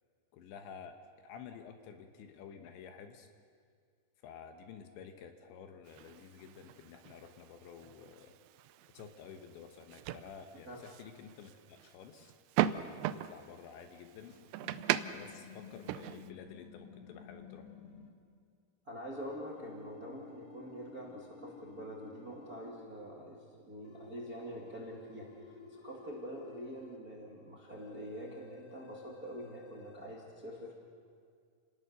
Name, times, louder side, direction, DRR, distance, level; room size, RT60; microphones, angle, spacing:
voice 1, 0.3-1.0 1.2-3.3 4.2-8.4 8.9-12.3 12.9-14.8 15.1-17.7, left 7 dB, 75° left, 6 dB, 3.2 m, -51 dB
sound 1, 5.9-16.3, right 13 dB, 80° right, 2.7 m, -39 dB
sound 2, 14.6-18.1 19.2-22.7 23.8-27.0 27.7-30.1, left 3 dB, 55° left, 1.6 m, -53 dB
voice 2, 18.8-30.7, equal, 30° right, -2 dB, 1.8 m, -45 dB
29.5 x 19.0 x 6.8 m, 2.2 s
omnidirectional pair, 5.7 m